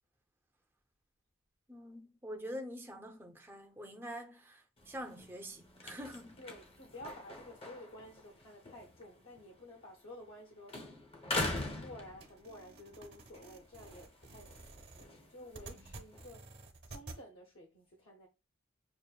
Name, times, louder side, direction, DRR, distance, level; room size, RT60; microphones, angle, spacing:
voice 1, 1.7-6.3 15.6-15.9, equal, 10° right, 0.5 m, -46 dB
sound 1, 4.8-10.4 10.7-12.7 13.2-16.3, left 2 dB, 25° left, 0.7 m, -43 dB
voice 2, 6.4-10.9 11.5-16.5 16.9-18.3, left 1 dB, 60° left, 0.9 m, -52 dB
sound 2, 12.2-17.2, right 3 dB, 50° right, 0.9 m, -52 dB
6.5 x 2.6 x 2.3 m
head